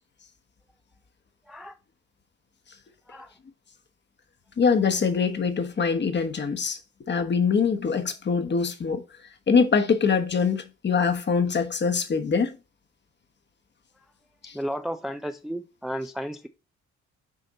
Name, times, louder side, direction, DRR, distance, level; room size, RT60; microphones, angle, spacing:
voice 1, 1.5-1.8 3.1-3.3 14.5-16.5, equal, ahead, 0.4 m, -33 dB
voice 2, 4.6-9.0 9.5-12.6 14.4-14.6, left 5 dB, 35° left, 1.1 m, -24 dB
6.4 x 4.3 x 4.1 m
cardioid pair, 90°, 30 cm